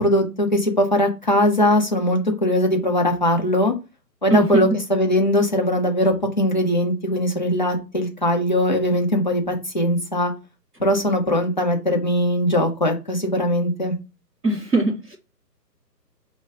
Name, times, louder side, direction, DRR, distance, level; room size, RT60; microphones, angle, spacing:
voice 1, 0.0-3.7 4.2-10.3 10.8-13.9, left 1 dB, 30° left, 0.6 m, -20 dB
voice 2, 4.3-4.7 14.4-15.2, right 1 dB, 5° right, 0.9 m, -20 dB
4.5 x 2.2 x 3.5 m
figure-of-eight pair, 150°, 50 cm